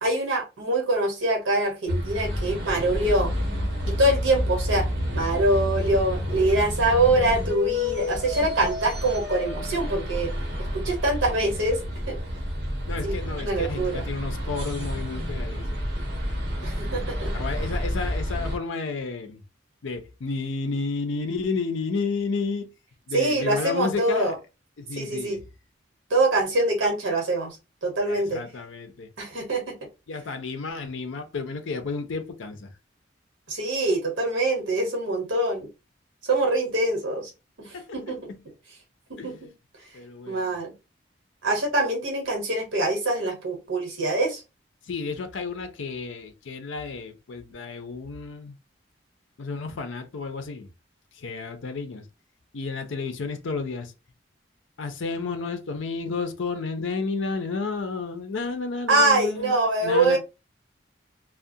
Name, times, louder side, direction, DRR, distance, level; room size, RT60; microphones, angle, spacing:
voice 1, 0.0-3.3 3.9-4.9 5.1-10.3 10.6-12.2 13.0-14.0 16.6-17.3 23.1-24.3 25.0-25.4 26.1-27.6 27.8-28.4 29.2-29.8 33.5-35.7 36.2-37.3 37.6-38.3 39.1-39.5 40.3-40.7 41.4-44.4 58.9-60.2, right 2 dB, 90° right, 1.0 m, -24 dB
sound 1, 1.9-18.6, left 1 dB, 55° right, 0.9 m, -29 dB
voice 2, 12.9-15.9 17.3-19.4 19.8-22.7 23.1-24.3 24.8-25.4 28.1-29.1 30.1-32.7 37.7-38.1 39.2-39.4 39.9-40.6 44.8-48.6 49.4-50.7 51.1-52.1 52.5-53.9 54.8-60.2, left 4 dB, 80° left, 0.5 m, -32 dB
2.4 x 2.1 x 2.6 m
head